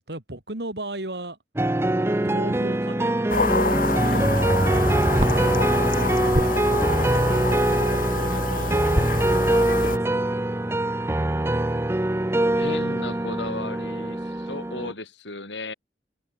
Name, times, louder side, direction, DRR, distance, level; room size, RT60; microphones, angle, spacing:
voice 1, 0.1-1.4 2.1-3.5 3.8-7.7 8.1-10.3, right 1 dB, 65° right, 3.7 m, -37 dB
sound 1, 1.6-14.9, right 1 dB, 15° right, 0.6 m, -23 dB
sound 2, 3.3-10.0, left 3 dB, 50° left, 1.7 m, -27 dB
sound 3, 8.9-12.0, equal, 30° right, 3.2 m, -33 dB
voice 2, 12.5-15.7, left 2 dB, 90° left, 6.3 m, -35 dB
head